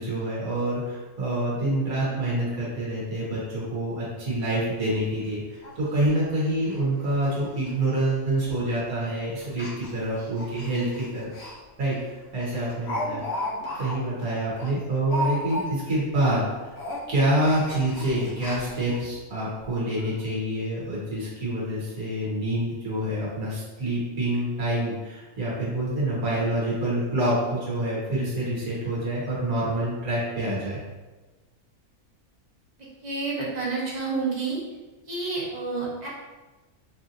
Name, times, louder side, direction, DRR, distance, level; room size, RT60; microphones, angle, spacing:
voice 1, 0.0-11.3 11.8-12.0 12.3-13.2 13.8-16.7 17.1-30.8, right 1 dB, 80° right, -6 dB, 1.6 m, -27 dB
Speech, 5.2-5.3 5.6-5.7 6.0-6.2 6.6-6.8 7.1-7.3 7.6-7.7 8.5-8.7 9.5-11.5 11.9-12.0 12.4-16.0 16.2-16.4 16.7-19.0 19.6-19.7 20.0-20.1, equal, 55° left, 0.9 m, -35 dB
voice 2, 33.0-34.6 35.1-36.1, right 4 dB, 30° right, -6 dB, 1.0 m, -29 dB
4.8 x 2.7 x 2.5 m, 1.2 s
omnidirectional pair, 1.5 m